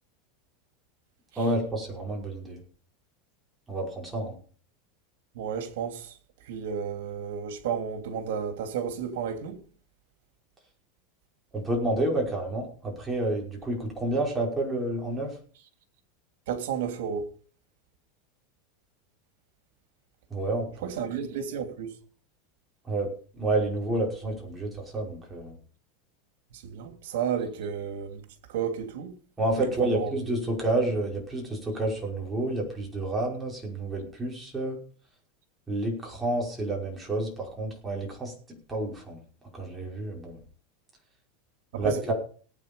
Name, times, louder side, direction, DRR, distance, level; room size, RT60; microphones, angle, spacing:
voice 1, 1.4-2.6 3.7-4.3 11.5-15.3 20.3-20.9 22.9-25.5 29.4-34.8 35.7-38.3 38.7-39.2 39.5-40.4 41.7-42.1, right 2 dB, 10° right, 5.4 m, -29 dB
voice 2, 5.3-6.1 6.5-9.6 16.5-17.3 20.8-21.9 26.6-28.2 28.5-29.1 29.6-30.1 41.7-42.1, right 7 dB, 75° right, 3.2 m, -32 dB
18.0 x 9.1 x 5.4 m
supercardioid pair, 160°, 0 cm